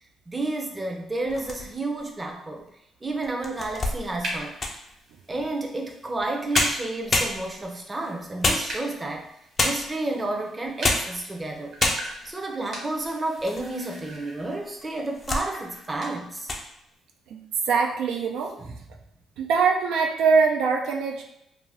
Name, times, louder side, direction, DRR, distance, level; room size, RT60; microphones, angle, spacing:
voice 1, 0.3-2.7 3.0-4.6 5.3-9.3 9.6-11.7 12.2-16.5 18.6-18.8, right 2 dB, 20° right, 1 dB, 0.5 m, -31 dB
sound 1, 1.2-2.0 2.6-2.7 3.2-4.9 6.2-6.3 6.5-7.8 8.4-9.1 9.6-10.0 10.6-11.2 11.5-11.6 11.8-12.4 12.9-13.7 14.0-14.1 14.8-15.5 15.8-16.1 16.4-16.7, left 2 dB, 40° left, 0.5 m, -27 dB
sound 2, 3.6-16.2, right 1 dB, 60° right, 1.2 m, -41 dB
voice 2, 17.7-18.5 19.4-21.2, right 5 dB, 85° right, 1 dB, 0.3 m, -22 dB
2.5 x 2.2 x 3.3 m, 0.80 s
cardioid pair, 90°, 0 cm